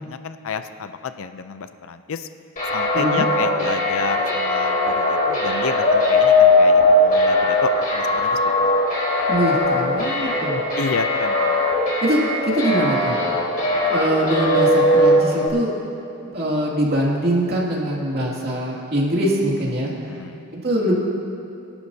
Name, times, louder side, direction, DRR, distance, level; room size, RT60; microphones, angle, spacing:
voice 1, 0.0-2.3 2.7-8.7 10.8-11.6 20.1-20.4, left 5 dB, 65° left, 10 dB, 0.5 m, -30 dB
sound 1, 2.6-15.5, left 2 dB, 40° left, 3.1 m, -19 dB
voice 2, 9.3-10.6 12.0-13.5 13.9-15.7 16.3-20.1 20.5-20.9, right 1 dB, 45° right, -3 dB, 2.4 m, -23 dB
23.0 x 11.5 x 2.8 m, 2.7 s
head